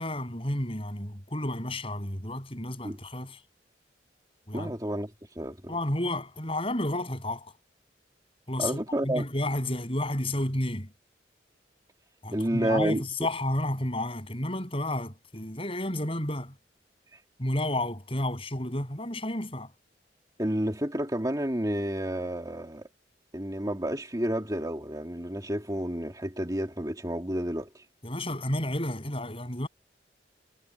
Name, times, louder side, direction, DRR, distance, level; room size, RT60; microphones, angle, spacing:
voice 1, 0.0-3.4 4.5-4.7 5.7-7.5 8.5-10.9 12.2-16.5 17.4-19.7 28.0-29.7, left 1 dB, 30° left, 7.8 m, -31 dB
voice 2, 4.5-5.1 5.4-5.7 8.6-9.2 12.3-13.0 20.4-22.8 23.3-27.8, right 1 dB, 20° right, 2.8 m, -30 dB
head